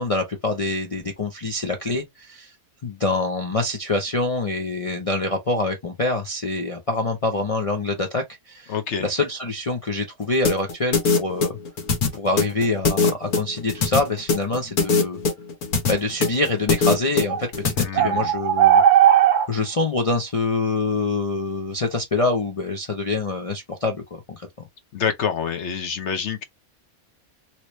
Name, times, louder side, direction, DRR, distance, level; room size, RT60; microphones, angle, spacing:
voice 1, 0.0-2.5 2.8-8.7 9.0-11.5 12.1-15.2 15.9-18.8 19.5-24.5, left 2 dB, 35° left, 0.6 m, -25 dB
voice 2, 8.7-9.1 17.8-18.3 24.9-26.4, left 7 dB, 60° left, 0.9 m, -27 dB
sound 1, 10.5-17.8, left 4 dB, 80° left, 1.5 m, -21 dB
sound 2, 17.3-17.4 17.9-19.5, right 10 dB, 65° right, 0.9 m, -16 dB
2.9 x 2.9 x 3.1 m
omnidirectional pair, 1.5 m